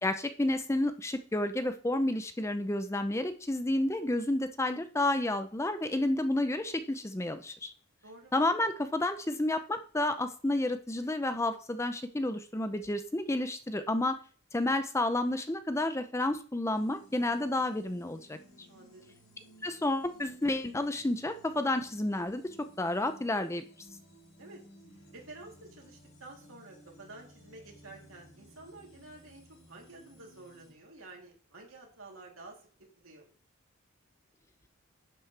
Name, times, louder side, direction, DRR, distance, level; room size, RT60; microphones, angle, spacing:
voice 1, 0.0-7.7 8.3-14.2 14.5-18.4 19.6-23.6, left 1 dB, 15° left, 9 dB, 0.5 m, -30 dB
voice 2, 8.0-8.3 18.7-19.2 24.4-24.6 25.1-32.7 33.0-33.3, right 2 dB, 75° right, -1 dB, 3.1 m, -50 dB
sound 1, 16.7-30.7, equal, 70° left, 4.7 m, -57 dB
10.5 x 7.6 x 3.3 m, 0.43 s
head